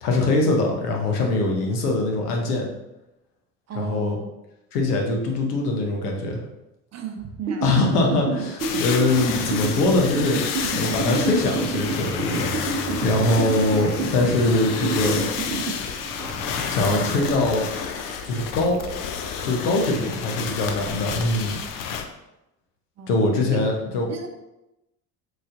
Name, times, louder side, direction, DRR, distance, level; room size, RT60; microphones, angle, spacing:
voice 1, 0.0-2.7 3.8-4.2 4.7-6.4 7.6-10.4 10.7-15.2 16.7-17.7 18.2-18.8 19.4-21.6 23.1-24.1, left 2 dB, 80° left, 1 dB, 0.9 m, -22 dB
voice 2, 3.7-4.3 6.9-7.9 20.0-20.3 21.1-21.2 23.0-23.7 24.0-24.3, right 7 dB, 35° right, 4 dB, 0.6 m, -35 dB
sound 1, 7.5-17.6 18.0-19.7, right 4 dB, 85° right, 0.6 m, -29 dB
sound 2, 8.1-15.3 16.2-17.3, left 2 dB, 25° left, 1.3 m, -37 dB
sound 3, 8.6-22.0, left 7 dB, 45° left, 0.5 m, -31 dB
4.0 x 3.1 x 2.5 m, 0.93 s
hypercardioid pair, 70°, 46 cm